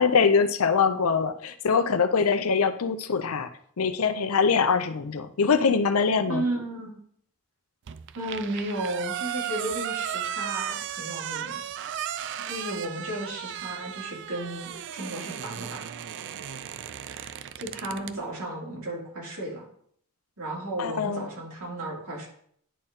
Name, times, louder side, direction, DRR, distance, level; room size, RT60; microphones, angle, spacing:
voice 1, 0.0-3.5 3.8-6.4 20.8-21.3, left 5 dB, 75° left, 10 dB, 0.6 m, -23 dB
voice 2, 6.3-7.0 8.1-11.6 12.4-15.9 16.5-19.7 20.4-22.3, right 1 dB, 75° right, -4 dB, 2.8 m, -34 dB
sound 1, 7.9-18.2, right 10 dB, 55° right, 0.4 m, -35 dB
10.0 x 4.3 x 3.7 m, 0.63 s
head